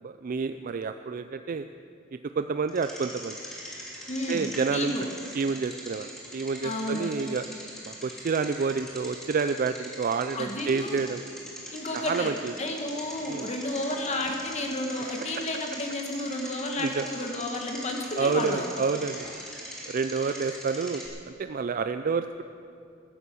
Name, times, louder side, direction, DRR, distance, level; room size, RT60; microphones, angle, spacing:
voice 1, 0.0-1.7 2.4-3.4 4.3-4.9 5.3-7.4 7.8-11.2 11.9-12.5 13.3-13.5 16.8-17.1 18.2-19.3 19.9-22.4, right 5 dB, 45° right, 9 dB, 0.4 m, -29 dB
Bicycle, 2.7-21.1, equal, ahead, 2.9 m, -42 dB
voice 2, 4.1-5.1 6.6-7.1 10.3-11.0 11.7-12.3 12.6-18.7, left 1 dB, 35° left, 2 dB, 1.5 m, -32 dB
14.5 x 11.0 x 7.0 m, 2.5 s
head